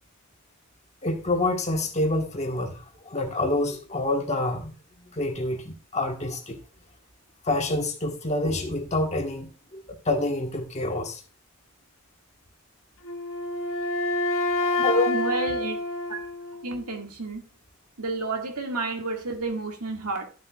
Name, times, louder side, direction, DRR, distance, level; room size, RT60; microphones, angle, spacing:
voice 1, 1.0-6.6 7.4-11.2 14.6-15.1, left 2 dB, 30° left, 1.3 m, -27 dB
Wind instrument woodwind instrument, 13.0-17.0, left 2 dB, 65° left, 1.4 m, -28 dB
voice 2, 15.1-15.8 16.1-16.2 16.6-17.4 18.0-20.2, right 3 dB, 90° right, 1.9 m, -30 dB
11.5 x 7.3 x 2.3 m
head